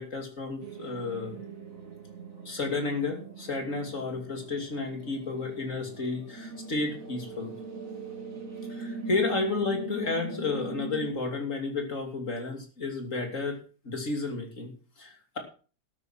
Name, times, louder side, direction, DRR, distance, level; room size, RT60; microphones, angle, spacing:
voice 1, 0.0-1.4 2.4-7.5 8.7-15.4, left 3 dB, 45° left, 3 dB, 3.3 m, -32 dB
sound 1, 0.6-11.1, right 4 dB, 50° right, 2.6 m, -41 dB
12.5 x 9.4 x 5.9 m, 0.38 s
omnidirectional pair, 1.9 m